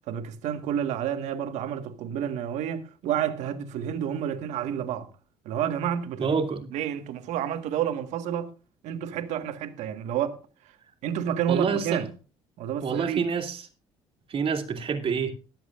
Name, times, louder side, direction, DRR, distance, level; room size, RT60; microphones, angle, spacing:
voice 1, 0.1-5.1 5.4-6.4 6.7-8.5 8.8-10.4 11.0-12.1 12.6-13.2, right 9 dB, 75° right, 1.6 m, -29 dB
voice 2, 6.2-6.6 11.5-12.0 12.8-13.7 14.3-15.3, right 6 dB, 50° right, 2.4 m, -27 dB
21.0 x 7.8 x 2.5 m
supercardioid pair, 85°, 12 cm